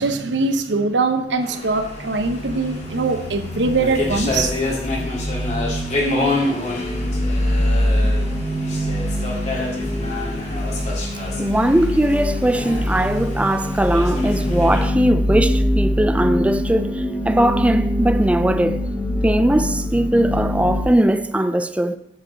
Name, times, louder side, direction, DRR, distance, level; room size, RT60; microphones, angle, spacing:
voice 1, 0.0-4.5, right 3 dB, 85° right, 0.8 m, -22 dB
sound 1, 1.4-14.9, left 2 dB, 40° left, 1.9 m, -28 dB
sound 2, 1.5-20.8, left 1 dB, 10° left, 1.0 m, -24 dB
voice 2, 11.4-18.8 19.2-22.0, right 1 dB, 5° right, 0.3 m, -19 dB
7.4 x 7.2 x 3.9 m
head